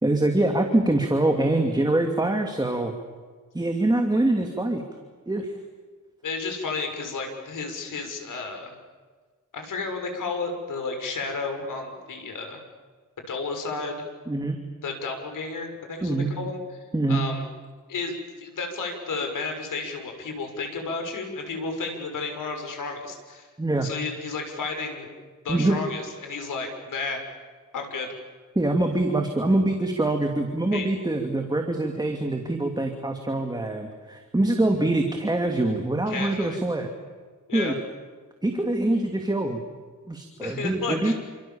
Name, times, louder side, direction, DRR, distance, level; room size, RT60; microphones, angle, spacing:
voice 1, 0.0-2.9 3.5-4.8 5.3-5.5 14.3-14.6 16.0-16.3 16.9-17.3 23.6-23.9 25.5-25.8 28.5-36.9 37.5-37.7 38.4-39.6 40.1-41.1, right 2 dB, 15° right, 3 dB, 2.8 m, -24 dB
voice 2, 6.2-8.7 9.5-12.6 13.3-14.0 14.8-16.6 17.1-17.4 17.9-23.5 23.8-25.1 25.4-27.2 27.7-28.1 30.7-30.9 36.1-36.6 37.5-37.8 40.4-41.1, left 4 dB, 85° left, 5 dB, 6.4 m, -32 dB
29.0 x 27.0 x 7.3 m, 1.5 s
wide cardioid pair, 120°, 31 cm